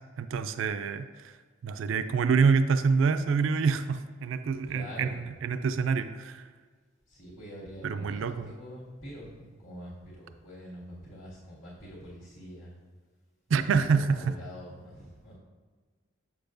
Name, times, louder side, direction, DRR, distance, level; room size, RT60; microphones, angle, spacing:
voice 1, 0.2-1.4 1.6-5.1 5.4-6.5 7.8-8.5 13.5-14.4, right 5 dB, 75° right, 10 dB, 0.3 m, -26 dB
voice 2, 4.4-5.3 7.1-12.8 13.5-15.3, equal, 85° left, -8 dB, 2.0 m, -45 dB
7.4 x 6.8 x 2.6 m, 1.5 s
head